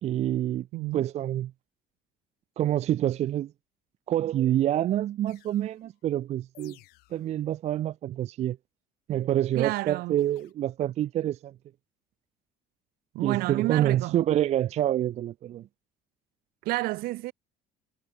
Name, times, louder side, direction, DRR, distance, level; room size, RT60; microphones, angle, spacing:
voice 1, 0.0-0.7 0.9-1.5 2.6-3.5 4.1-6.8 7.1-8.6 9.1-11.5 13.2-15.7, right 12 dB, 45° right, 0.5 m, -27 dB
voice 2, 0.7-1.1 9.6-10.1 13.1-14.2 16.6-17.3, right 20 dB, 75° right, 0.7 m, -30 dB
sound 1, 5.3-5.8 6.5-7.4 10.2-10.5, left 20 dB, 85° left, 5.5 m, -56 dB
cardioid pair, 135°, 16 cm